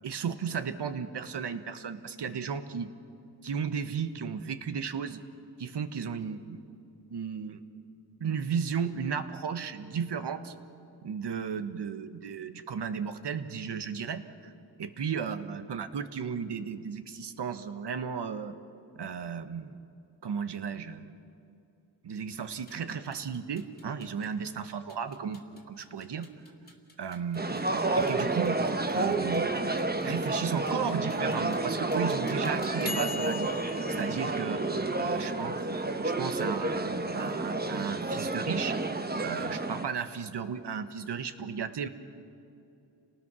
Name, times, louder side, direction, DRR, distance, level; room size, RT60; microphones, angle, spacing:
voice 1, 0.0-2.9 3.4-5.2 5.6-6.6 7.1-7.6 8.2-10.5 11.0-14.5 14.8-18.6 19.0-19.8 20.2-21.1 22.0-26.3 27.0-27.7 28.0-28.6 28.9-29.5 30.0-33.5 34.0-35.5 36.0-38.8 39.2-41.9, right 6 dB, 60° right, 10 dB, 1.3 m, -34 dB
sound 1, 22.7-35.3, left 4 dB, 20° left, 3.0 m, -46 dB
sound 2, 27.3-39.8, right 2 dB, 20° right, 1.1 m, -30 dB
29.5 x 19.0 x 6.2 m, 2.6 s
wide cardioid pair, 110°, 46 cm